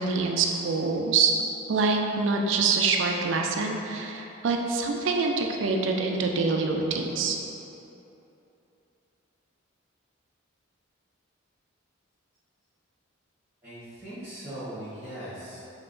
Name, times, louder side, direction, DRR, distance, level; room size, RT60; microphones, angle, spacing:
voice 1, 0.0-1.3 1.7-7.4, right 4 dB, 60° right, 2 dB, 0.4 m, -25 dB
voice 2, 13.6-15.6, right 1 dB, 10° right, -16 dB, 1.1 m, -39 dB
5.6 x 2.8 x 2.6 m, 3.0 s
head